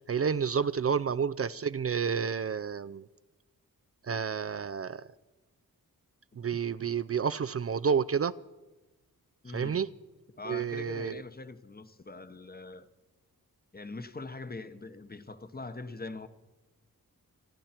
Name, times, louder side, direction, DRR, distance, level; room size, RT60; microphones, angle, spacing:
voice 1, 0.0-3.1 4.0-5.0 6.4-8.3 9.5-9.9 10.5-11.2, right 6 dB, 40° right, 0.4 m, -30 dB
voice 2, 9.4-9.8 10.4-12.9 13.7-16.3, left 3 dB, 25° left, 1.0 m, -42 dB
29.0 x 10.0 x 4.5 m
cardioid pair, 65°, 36 cm